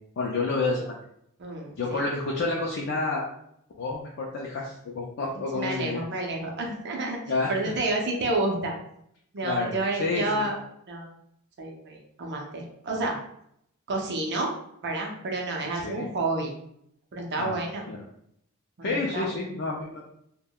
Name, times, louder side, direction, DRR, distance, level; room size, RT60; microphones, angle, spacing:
voice 1, 0.2-1.0 1.8-3.3 3.8-6.0 7.3-7.5 9.4-10.5 15.8-16.1 17.4-17.6 17.9-18.0 18.8-20.0, left 3 dB, 50° left, -2 dB, 0.4 m, -29 dB
voice 2, 1.4-2.0 5.5-7.2 7.5-8.7 9.3-10.6 10.9-11.1 11.6-13.2 13.9-14.5 14.8-16.5 17.1-17.9 18.8-19.3, right 2 dB, 50° right, 1 dB, 0.6 m, -30 dB
3.4 x 2.2 x 2.2 m, 0.73 s
head